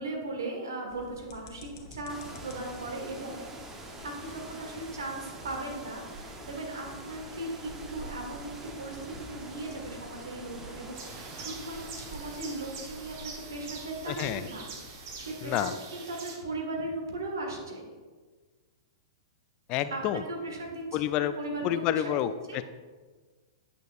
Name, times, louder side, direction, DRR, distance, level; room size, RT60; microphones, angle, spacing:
voice 1, 0.0-3.4 4.0-14.6 15.2-17.8 19.9-22.6, right 2 dB, 75° right, 1 dB, 1.6 m, -38 dB
sound 1, 0.9-15.3, left 4 dB, 60° left, 1.0 m, -52 dB
sound 2, 2.1-13.8, right 2 dB, 20° right, 0.9 m, -45 dB
sound 3, 10.9-16.4, right 5 dB, 50° right, 1.2 m, -44 dB
voice 2, 14.1-14.4 15.4-15.7 19.7-20.2 20.9-21.3 21.6-22.6, left 12 dB, 40° left, 12 dB, 0.3 m, -29 dB
9.0 x 6.4 x 2.5 m, 1.4 s
figure-of-eight pair, 105°, 2 cm